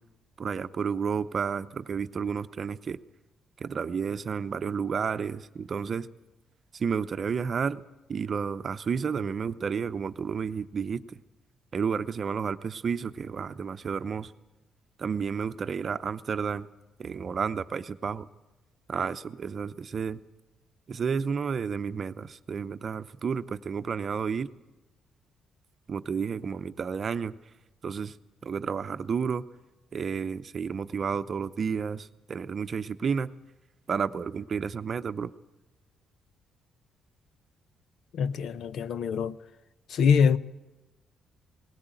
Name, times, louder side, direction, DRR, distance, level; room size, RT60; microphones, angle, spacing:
voice 1, 0.4-3.0 3.6-6.1 6.7-7.8 8.1-11.0 11.7-14.3 15.0-16.7 17.0-18.3 18.9-20.2 20.9-24.5 25.9-27.3 27.8-28.1 28.4-29.5 29.9-33.3 33.9-35.3, right 6 dB, 45° right, 0.7 m, -31 dB
voice 2, 38.1-39.4 39.9-40.4, left 6 dB, 70° left, 0.7 m, -24 dB
19.5 x 16.5 x 9.1 m
cardioid pair, 90°, 0 cm